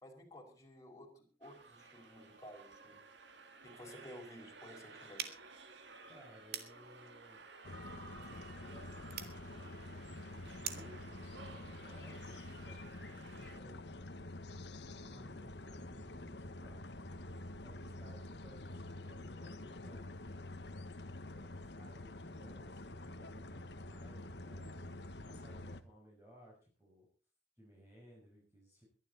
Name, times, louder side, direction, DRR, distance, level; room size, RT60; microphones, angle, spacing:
voice 1, 0.0-3.0 3.6-5.4, equal, 20° left, 1 dB, 4.9 m, -54 dB
sound 1, 1.4-13.6, right 3 dB, 80° right, 2.3 m, -55 dB
sound 2, 5.1-11.0, right 9 dB, 60° right, 2.1 m, -48 dB
voice 2, 6.0-7.4 8.5-9.9 10.3-14.0 14.8-17.2 17.6-20.1 21.2-27.1 27.6-28.8, equal, 15° right, -4 dB, 6.0 m, -60 dB
sound 3, 7.6-25.8, left 2 dB, 70° left, 1.4 m, -48 dB
22.0 x 11.5 x 4.1 m, 0.38 s
head